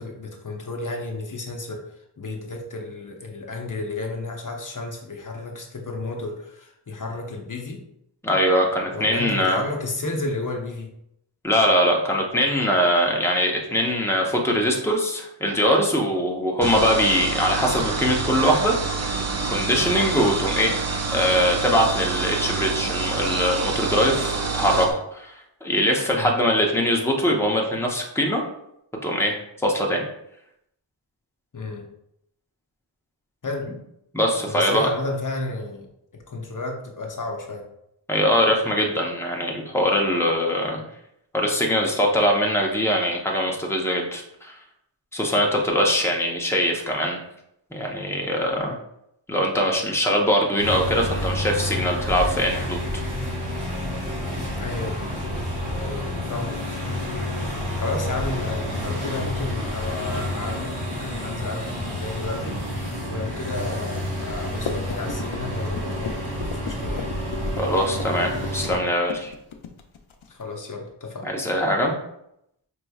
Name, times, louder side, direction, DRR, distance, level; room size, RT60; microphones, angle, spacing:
voice 1, 0.0-7.8 8.9-10.9 26.1-26.3 31.5-31.9 33.4-33.7 34.5-35.9 36.1-37.6 54.2-55.0 55.8-56.6 57.8-62.6 63.1-67.1 70.3-71.3, left 3 dB, 40° left, 1 dB, 0.8 m, -32 dB
voice 2, 8.2-9.6 11.4-19.1 19.5-20.8 21.1-28.4 29.0-30.0 34.1-34.9 38.1-40.8 41.3-44.6 45.1-47.2 47.7-48.8 49.3-53.0 67.6-69.3 71.2-71.9, equal, 5° left, 0 dB, 0.7 m, -22 dB
sound 1, 16.6-24.9, right 4 dB, 35° right, 0.5 m, -27 dB
sound 2, 50.6-68.8, left 1 dB, 55° right, 1.4 m, -29 dB
sound 3, 57.0-70.6, left 6 dB, 85° left, 0.5 m, -38 dB
5.2 x 3.1 x 2.3 m, 0.78 s
wide cardioid pair, 65°, 46 cm